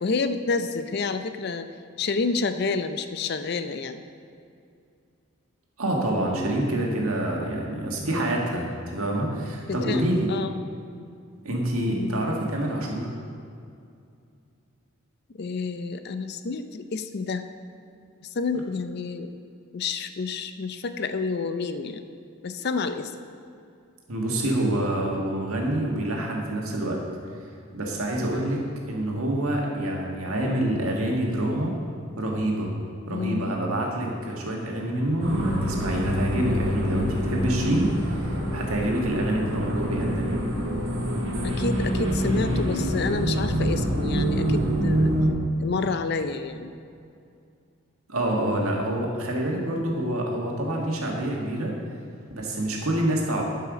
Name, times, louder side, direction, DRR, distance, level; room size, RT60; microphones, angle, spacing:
voice 1, 0.0-1.7 2.0-4.0 9.7-10.5 11.9-12.2 15.4-17.5 18.3-19.3 19.7-22.1 22.4-23.1 33.1-33.5 41.4-45.1 45.6-46.7, left 4 dB, 50° left, 10 dB, 0.4 m, -29 dB
voice 2, 5.8-10.3 11.4-13.1 24.1-27.0 27.7-31.7 32.2-32.7 33.1-40.4 48.1-51.7 52.3-53.4, right 1 dB, 85° right, -1 dB, 1.7 m, -27 dB
sound 1, 35.2-45.3, equal, 60° right, 1.5 m, -26 dB
12.0 x 5.6 x 5.0 m, 2.5 s
head